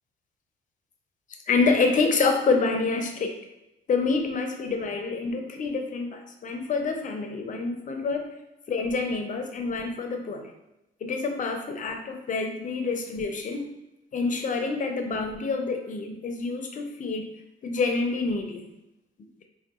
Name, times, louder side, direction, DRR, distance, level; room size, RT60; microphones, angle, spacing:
voice 1, 1.5-3.3 3.9-8.3 8.7-10.5 11.0-13.7 14.1-17.3 17.6-18.7, left 4 dB, 40° left, 4 dB, 0.5 m, -27 dB
3.7 x 2.2 x 2.3 m, 0.90 s
cardioid pair, 90°, 20 cm